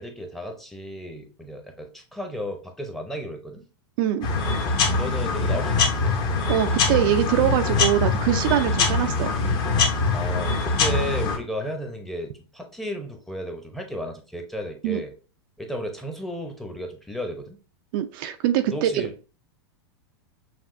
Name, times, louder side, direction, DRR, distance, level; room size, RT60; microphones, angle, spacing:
voice 1, 0.0-3.6 5.0-6.1 10.1-15.1 15.6-17.6 18.7-19.2, equal, ahead, 4 dB, 0.8 m, -33 dB
voice 2, 4.0-4.3 6.5-9.3 14.8-15.0 17.9-19.1, right 11 dB, 55° right, 8 dB, 0.4 m, -23 dB
sound 1, 4.2-11.4, left 3 dB, 35° left, 0.9 m, -23 dB
5.9 x 2.4 x 2.5 m, 0.35 s
supercardioid pair, 135°, 14 cm